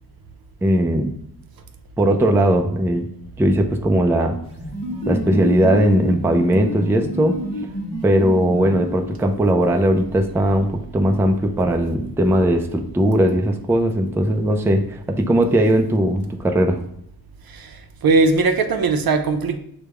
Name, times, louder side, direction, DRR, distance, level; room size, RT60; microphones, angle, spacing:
voice 1, 0.6-1.1 2.0-3.1 3.4-4.4 5.1-7.4 8.0-16.8, right 1 dB, 5° right, 4 dB, 0.4 m, -18 dB
sound 1, 4.4-9.4, equal, 15° left, 1.1 m, -28 dB
voice 2, 18.0-19.6, right 3 dB, 65° right, 7 dB, 0.6 m, -18 dB
5.8 x 2.2 x 3.4 m, 0.73 s
wide cardioid pair, 85°, 38 cm